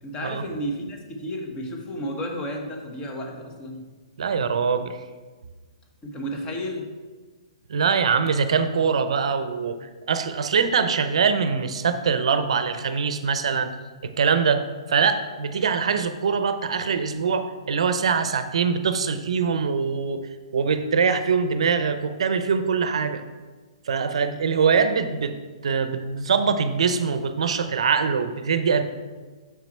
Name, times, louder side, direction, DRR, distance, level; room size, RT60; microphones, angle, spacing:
voice 1, 0.0-3.9 6.0-6.9, equal, 25° left, 2 dB, 1.2 m, -32 dB
voice 2, 4.2-5.0 7.7-13.7 14.0-14.6 14.9-20.2 20.5-23.2 23.9-25.3 25.6-28.8, right 5 dB, 70° right, 10 dB, 0.6 m, -23 dB
6.8 x 6.0 x 4.3 m, 1.4 s
hypercardioid pair, 135°, 3 cm